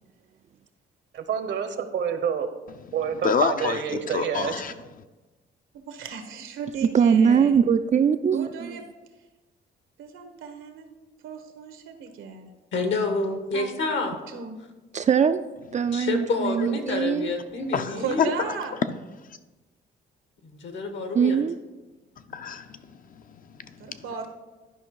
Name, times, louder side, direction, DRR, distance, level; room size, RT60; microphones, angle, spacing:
voice 1, 1.1-2.5 2.9-4.5, right 7 dB, 65° right, 0.9 m, -28 dB
voice 2, 3.2-3.8 4.1-4.7 17.7-18.3 22.3-24.0, left 6 dB, 45° left, 0.6 m, -28 dB
voice 3, 5.7-7.6 8.3-8.8 10.0-10.9 11.2-12.5 13.5-14.6 18.0-18.7 23.8-24.3, right 6 dB, 85° right, 1.2 m, -36 dB
voice 4, 6.9-8.8 14.9-17.3 21.1-21.6, right 7 dB, 35° right, 0.4 m, -22 dB
voice 5, 12.7-14.2 15.9-18.3 20.4-21.4, left 3 dB, 70° left, 1.4 m, -28 dB
11.0 x 5.1 x 4.7 m
cardioid pair, 90°, 20 cm